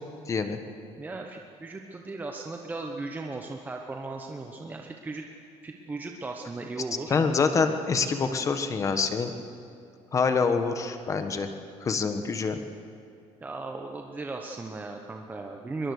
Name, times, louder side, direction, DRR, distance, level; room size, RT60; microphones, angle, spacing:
voice 1, 0.3-0.6 7.1-9.3 10.1-11.5 11.8-12.6, left 5 dB, 25° left, 7 dB, 1.4 m, -26 dB
voice 2, 1.0-5.2 5.6-7.2 13.4-15.9, right 3 dB, 15° right, 2 dB, 1.0 m, -37 dB
23.5 x 22.0 x 6.6 m, 2.3 s
cardioid pair, 165°, 12 cm